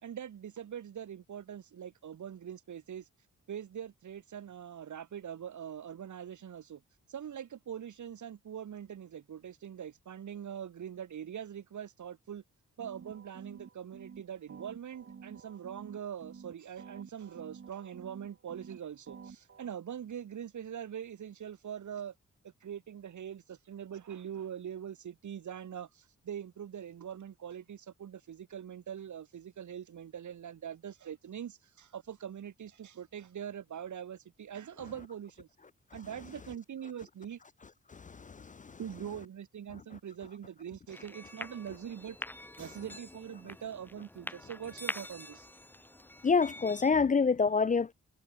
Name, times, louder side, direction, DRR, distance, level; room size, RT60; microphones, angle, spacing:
voice 1, 0.0-3.1 3.5-6.8 7.1-12.4 12.8-22.1 22.4-35.5 35.9-37.4 38.8-42.2 42.6-45.5, right 9 dB, 85° right, 4.3 m, -43 dB
sound 1, 12.8-14.2 14.5-16.5 16.8-18.8 19.1-19.7, right 6 dB, 45° right, 2.3 m, -50 dB
voice 2, 37.9-38.8 46.2-47.9, left 5 dB, 30° left, 0.4 m, -27 dB
sound 2, 40.9-46.9, left 1 dB, 5° left, 1.0 m, -45 dB
wide cardioid pair, 135°, 29 cm